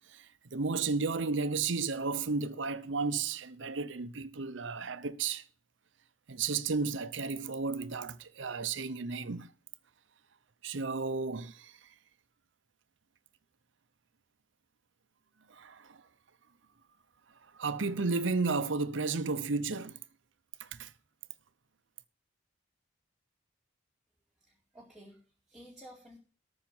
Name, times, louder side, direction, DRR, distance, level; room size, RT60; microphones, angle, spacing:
voice 1, 0.1-5.4 6.3-9.5 10.6-11.8 15.5-16.0 17.5-20.0 20.6-20.9, right 4 dB, 70° right, 0.8 m, -33 dB
voice 2, 24.4-26.2, equal, ahead, 2.4 m, -53 dB
13.0 x 6.4 x 6.1 m
head